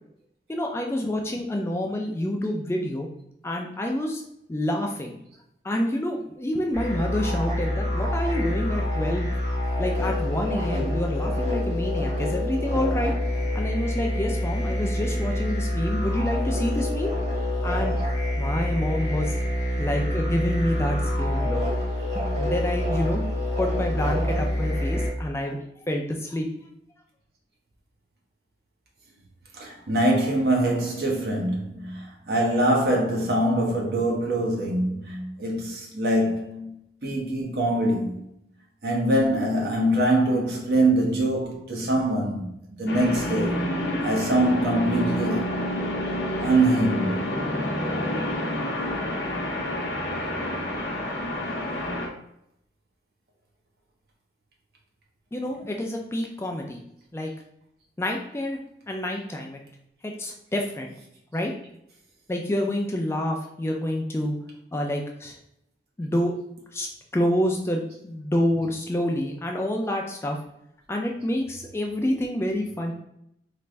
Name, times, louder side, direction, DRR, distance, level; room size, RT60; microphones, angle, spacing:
voice 1, 0.5-3.1 3.4-4.2 4.5-5.2 5.6-9.3 9.8-13.1 13.5-17.1 17.6-18.0 18.4-19.3 19.8-21.6 22.1-23.3 23.6-26.5 55.3-56.8 57.1-57.3 58.0-58.6 58.9-59.6 60.0-60.9 61.3-61.5 62.3-64.4 64.7-65.4 66.0-66.3 66.7-66.9 67.1-70.4 70.9-72.9, left 1 dB, 15° left, 0.3 m, -28 dB
sound 1, 6.7-25.1, left 1 dB, 40° right, 1.4 m, -26 dB
voice 2, 29.5-36.7 37.0-38.2 38.8-43.6 44.0-45.5 46.4-47.4, right 1 dB, 60° right, 0.8 m, -24 dB
sound 2, 42.9-52.1, left 1 dB, 70° left, 0.7 m, -28 dB
3.2 x 2.5 x 3.1 m
head